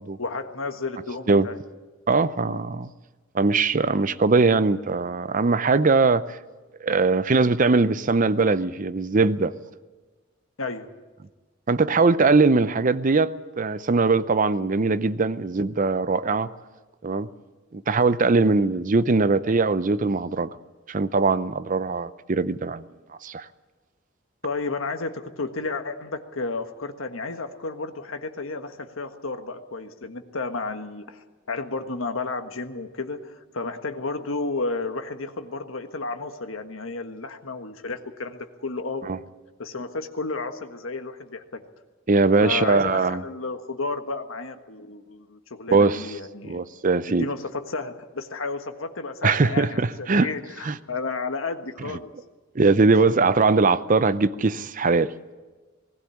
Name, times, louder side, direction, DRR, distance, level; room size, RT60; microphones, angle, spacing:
voice 1, 0.2-1.6 2.5-2.6 10.6-10.9 24.4-31.2 31.5-39.1 39.6-41.6 42.4-46.6 47.1-52.1 52.8-52.9, left 3 dB, 90° left, 1.5 m, -32 dB
voice 2, 2.1-2.9 3.3-6.4 6.8-9.5 11.7-16.5 17.0-17.3 17.7-20.5 20.9-22.8 23.2-23.5 39.1-39.2 42.1-43.2 45.7-46.1 46.4-47.3 49.2-50.3 50.6-50.7 52.5-55.1, right 3 dB, 40° right, 0.6 m, -21 dB
19.5 x 16.0 x 8.5 m
head